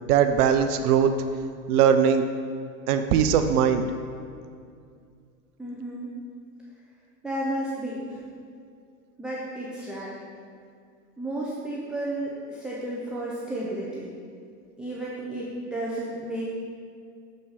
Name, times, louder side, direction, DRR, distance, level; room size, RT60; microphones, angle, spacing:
voice 1, 0.1-1.1 1.7-2.2 2.9-3.9, right 8 dB, 70° right, 8 dB, 0.6 m, -20 dB
voice 2, 5.6-6.1 7.2-8.2 9.2-10.2 11.2-14.1 14.8-16.5, right 1 dB, ahead, -7 dB, 0.4 m, -32 dB
6.5 x 4.2 x 5.4 m, 2.3 s
hypercardioid pair, 120°, 48 cm